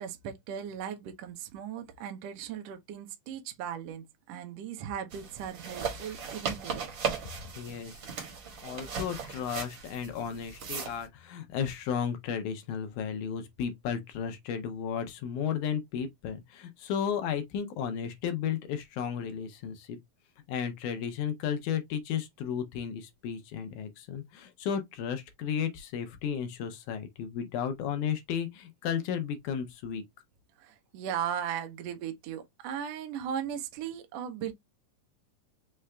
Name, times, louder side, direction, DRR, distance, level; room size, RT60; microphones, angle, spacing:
voice 1, 0.0-6.9 30.6-34.5, right 8 dB, 75° right, 1.5 m, -37 dB
sound 1, 5.1-11.0, right 6 dB, 50° right, 1.4 m, -37 dB
voice 2, 7.6-8.0 8.6-20.0 20.5-30.0, left 8 dB, 75° left, 2.0 m, -34 dB
5.6 x 2.5 x 3.2 m
omnidirectional pair, 4.0 m